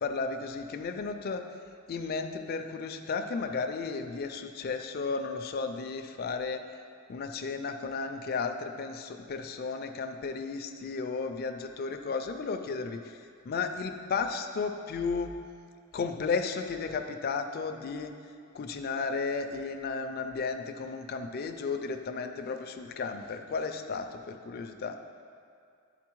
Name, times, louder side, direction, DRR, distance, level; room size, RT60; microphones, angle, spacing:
voice 1, 0.0-1.4 1.9-6.6 7.1-13.0 13.4-15.3 15.9-18.1 18.5-25.0, left 4 dB, 45° left, 7 dB, 0.4 m, -34 dB
10.5 x 4.0 x 3.0 m, 2.3 s
head